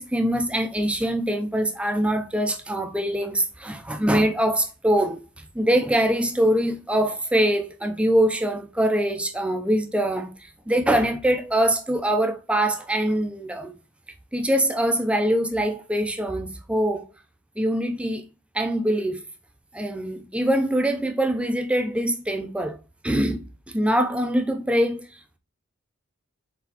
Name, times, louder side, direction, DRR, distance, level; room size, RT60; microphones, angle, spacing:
voice 1, 0.0-13.7 14.3-17.1 17.6-18.2 18.5-19.2 19.7-22.8 23.0-25.1, right 1 dB, 5° right, 0.3 m, -23 dB
4.1 x 4.0 x 2.8 m
head